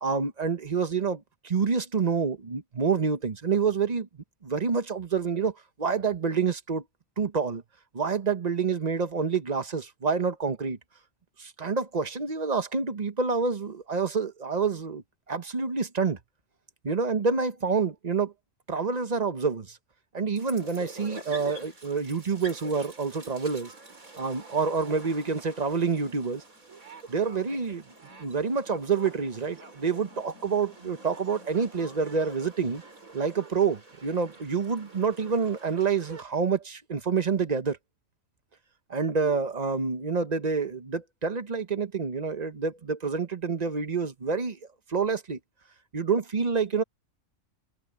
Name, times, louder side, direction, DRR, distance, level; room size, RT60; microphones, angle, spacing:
voice 1, 0.0-4.1 4.4-5.5 5.8-6.8 7.2-7.6 7.9-10.8 11.4-16.2 16.8-18.3 18.7-19.8 20.1-23.7 24.2-26.4 27.1-27.8 28.2-32.8 33.1-37.8 38.9-44.6 44.9-45.4 45.9-46.8, right 5 dB, 35° right, 1.0 m, -27 dB
sound 1, 20.4-36.2, right 3 dB, 85° right, 4.9 m, -47 dB
omnidirectional pair, 1.4 m